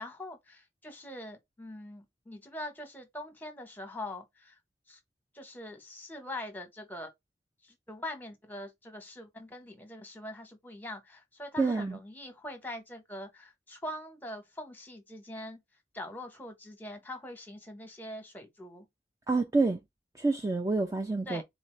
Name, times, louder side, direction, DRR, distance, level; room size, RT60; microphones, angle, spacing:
voice 1, 0.0-4.6 4.9-5.0 5.3-7.1 7.6-15.6 15.9-18.9 21.3-21.4, left 1 dB, 10° left, 0.9 m, -43 dB
voice 2, 11.6-12.0 19.3-19.8 20.2-21.4, right 3 dB, 15° right, 0.3 m, -28 dB
3.9 x 2.7 x 3.1 m
head